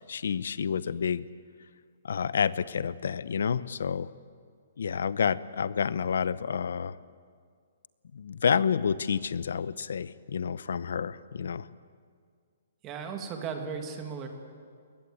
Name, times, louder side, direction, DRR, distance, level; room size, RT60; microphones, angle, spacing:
voice 1, 0.1-1.3 2.0-4.1 4.8-7.0 8.1-11.7, left 6 dB, 65° left, 17 dB, 0.8 m, -29 dB
voice 2, 12.8-14.3, right 6 dB, 15° right, 5 dB, 1.8 m, -36 dB
22.0 x 20.5 x 8.6 m, 2.1 s
hypercardioid pair, 180°, 0 cm